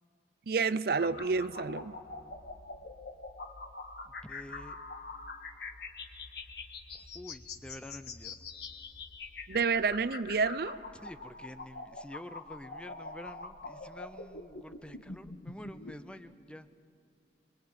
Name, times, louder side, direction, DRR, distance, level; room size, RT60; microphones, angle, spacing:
voice 1, 0.5-1.9 9.5-10.8, right 4 dB, 60° right, 16 dB, 0.5 m, -29 dB
sound 1, 1.0-15.9, left 3 dB, 65° left, 1.7 m, -45 dB
voice 2, 4.1-4.8 6.9-8.5 10.9-16.9, left 1 dB, 5° left, 11 dB, 0.5 m, -48 dB
26.0 x 22.5 x 8.7 m, 2.7 s
head